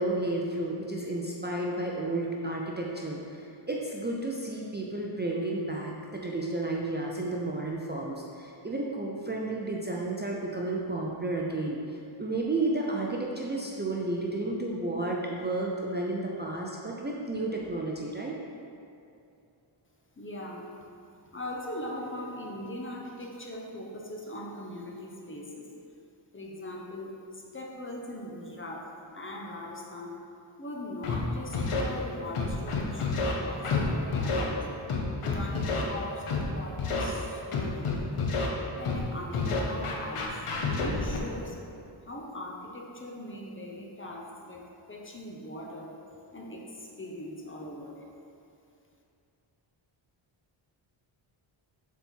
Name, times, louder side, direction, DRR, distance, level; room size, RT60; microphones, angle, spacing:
voice 1, 0.0-18.3, right 2 dB, 20° right, -2 dB, 0.5 m, -32 dB
voice 2, 20.2-20.7 21.3-25.7 26.3-30.2 30.6-34.6 35.2-38.4 38.8-40.4 40.8-41.6 42.1-46.0 46.3-48.0, left 1 dB, 25° left, -1 dB, 0.8 m, -40 dB
Scratching (performance technique), 31.0-31.2 31.5-31.8 32.3-33.3 33.6-33.8 34.1-34.4 34.9-35.8 36.3-36.4 36.8-37.0 37.5-38.5 38.8-39.0 39.3-41.2, left 4 dB, 90° left, 1.0 m, -29 dB
7.0 x 4.2 x 4.4 m, 2.6 s
wide cardioid pair, 125°, 49 cm